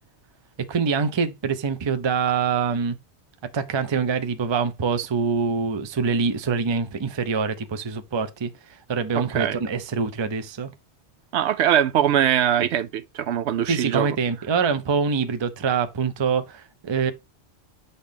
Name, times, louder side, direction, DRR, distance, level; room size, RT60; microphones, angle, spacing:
voice 1, 0.7-3.0 3.5-8.5 8.9-10.7 13.7-17.1, right 5 dB, 35° right, 0.5 m, -25 dB
voice 2, 11.3-14.1, right 10 dB, 75° right, 0.8 m, -22 dB
7.2 x 4.1 x 3.4 m
omnidirectional pair, 1.2 m